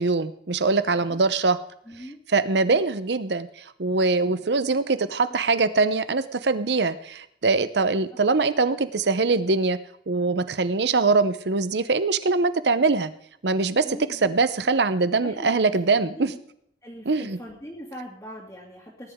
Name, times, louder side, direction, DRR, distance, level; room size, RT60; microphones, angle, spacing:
voice 1, 0.0-1.6 2.3-9.8 10.1-13.1 13.4-16.3 17.1-17.4, right 3 dB, 75° right, 14 dB, 0.8 m, -23 dB
voice 2, 0.8-1.2 1.9-2.2 2.6-2.8 4.2-4.8 5.2-5.4 7.8-7.9 13.8-14.3 15.2-15.6 15.9-16.4 16.8-19.1, equal, 15° left, -5 dB, 2.5 m, -41 dB
19.0 x 11.0 x 3.7 m, 0.70 s
head